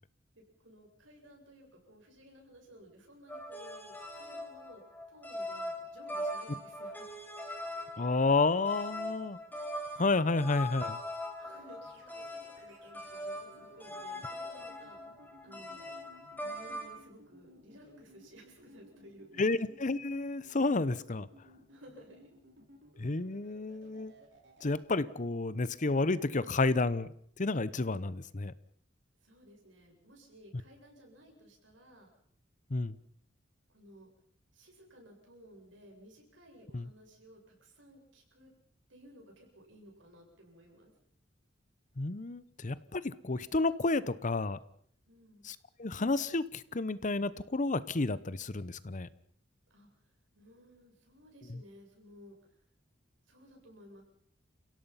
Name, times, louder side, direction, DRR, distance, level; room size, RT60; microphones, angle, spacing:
voice 1, 0.3-4.8 5.1-7.1 11.4-15.0 15.4-15.9 16.4-19.5 21.7-22.3 29.2-32.1 33.7-34.1 34.5-38.5 38.9-40.9 45.1-45.5 49.7-52.4 53.3-54.0, equal, 90° right, 1 dB, 7.8 m, -56 dB
sound 1, 3.3-16.9, left 1 dB, 10° left, 4.4 m, -41 dB
voice 2, 8.0-9.4 9.9-11.0 19.4-21.3 23.0-24.1 24.6-28.5 32.7-33.0 36.7-36.9 42.0-44.6 45.4-49.1 51.5-51.6, left 3 dB, 40° left, 17 dB, 0.9 m, -31 dB
sound 2, 11.4-24.8, equal, 70° right, 6.3 m, -58 dB
30.0 x 17.0 x 5.8 m, 0.63 s
head